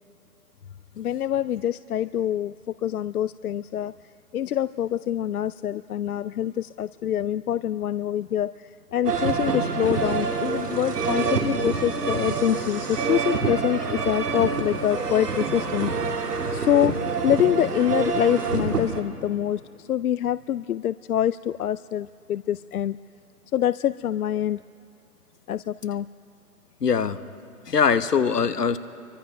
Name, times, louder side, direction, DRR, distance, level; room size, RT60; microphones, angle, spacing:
voice 1, 1.0-3.9 4.3-16.2 16.5-16.9 17.2-23.0 23.5-24.6 25.5-26.1, left 11 dB, 70° left, 15 dB, 0.6 m, -25 dB
sound 1, 9.0-19.0, right 5 dB, 85° right, 3.0 m, -27 dB
voice 2, 26.8-27.2 27.7-28.8, left 6 dB, 85° left, 11 dB, 1.3 m, -22 dB
29.5 x 24.0 x 5.5 m, 2.5 s
hypercardioid pair, 150°, 46 cm